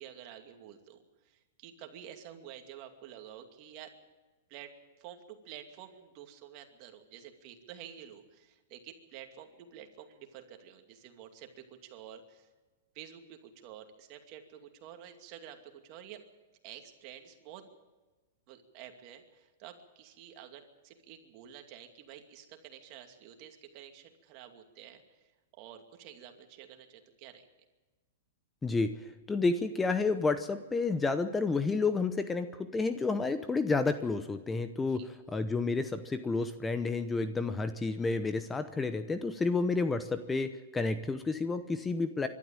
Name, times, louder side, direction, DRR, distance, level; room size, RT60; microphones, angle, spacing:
voice 1, 0.0-3.9 4.5-4.7 5.0-12.5 12.9-16.2 16.6-17.7 18.5-27.5 34.9-35.1, right 10 dB, 45° right, 5 dB, 2.5 m, -50 dB
voice 2, 28.6-28.9 29.3-35.0 35.3-42.3, left 3 dB, 10° left, 10 dB, 0.8 m, -30 dB
24.0 x 12.5 x 8.9 m, 1.2 s
hypercardioid pair, 135°, 0 cm